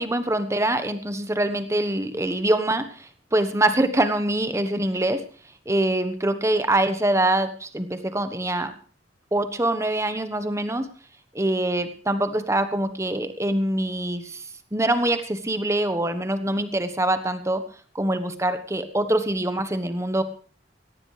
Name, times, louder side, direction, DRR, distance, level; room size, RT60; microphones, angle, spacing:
voice 1, 0.0-5.2 5.7-8.7 9.3-10.9 11.3-14.4 14.7-17.6 17.9-20.2, right 1 dB, 15° right, 9 dB, 1.2 m, -24 dB
18.0 x 15.0 x 3.3 m, 0.42 s
head